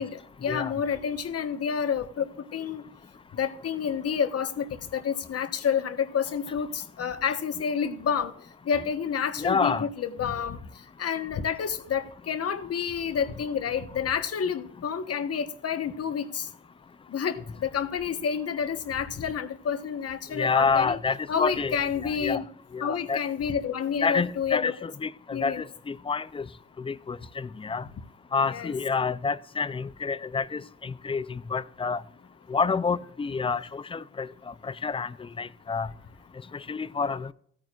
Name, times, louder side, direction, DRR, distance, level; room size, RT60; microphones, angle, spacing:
voice 1, 0.0-2.8 3.3-8.3 8.6-10.6 11.0-16.5 17.1-21.0 21.3-22.4 22.8-24.8 25.3-25.6 28.5-28.7, left 7 dB, 55° left, 1.2 m, -29 dB
voice 2, 9.4-9.9 20.3-22.4 22.7-23.2 24.0-26.5 26.8-27.8 28.3-32.0 32.5-35.9 36.5-37.3, left 5 dB, 20° left, 0.5 m, -28 dB
16.0 x 9.1 x 2.4 m
cardioid pair, 90°, 30 cm